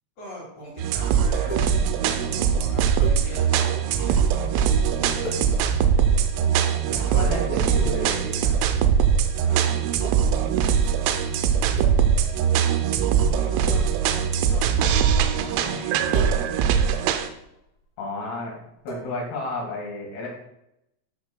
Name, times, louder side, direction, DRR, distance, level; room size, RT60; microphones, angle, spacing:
voice 1, 0.2-1.7 2.1-5.3 9.4-10.0 13.3-16.5, equal, 80° left, -5 dB, 1.4 m, -41 dB
sound 1, 0.7-0.8 1.1-1.2 1.5-2.3 3.0-4.4 5.1-7.8 8.1-8.5 8.8-8.9 10.0-11.3 11.8-12.5 12.7-12.9 13.4-13.5 13.7-15.3 16.0-17.7 18.9-19.3, equal, 35° left, 2.5 m, -40 dB
sound 2, 0.8-17.3, right 7 dB, 85° right, 3.1 m, -21 dB
voice 2, 6.4-8.6 18.0-18.6 18.8-20.3, left 2 dB, 60° left, -1 dB, 3.3 m, -32 dB
12.5 x 5.9 x 2.2 m, 0.81 s
omnidirectional pair, 6.0 m